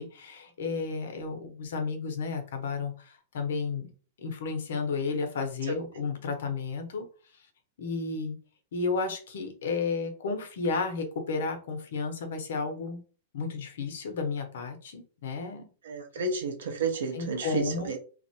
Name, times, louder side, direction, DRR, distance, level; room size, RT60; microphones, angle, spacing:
voice 1, 0.0-3.9 4.2-7.1 7.8-8.4 8.7-13.0 13.3-15.6 17.1-17.9, left 4 dB, 75° left, 5 dB, 0.7 m, -32 dB
voice 2, 15.8-18.0, right 4 dB, 85° right, 3 dB, 0.7 m, -31 dB
2.4 x 2.1 x 2.7 m, 0.38 s
supercardioid pair, 150°, 0 cm